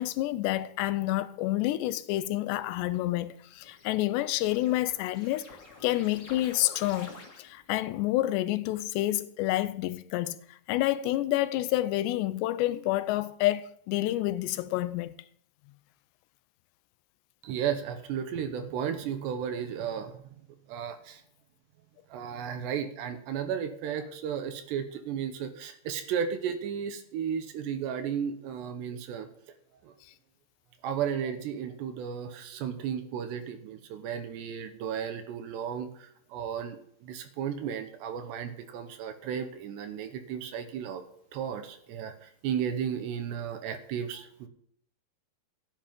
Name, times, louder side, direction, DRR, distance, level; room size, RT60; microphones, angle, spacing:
voice 1, 0.0-15.1, left 16 dB, 80° left, 2.8 m, -29 dB
sound 1, 2.8-7.8, left 3 dB, 30° left, 2.3 m, -50 dB
voice 2, 17.4-20.2 20.7-21.2 22.1-29.3 29.8-29.9 30.8-41.0 41.3-44.5, right 8 dB, 75° right, 3.1 m, -34 dB
15.0 x 10.5 x 5.3 m
omnidirectional pair, 5.1 m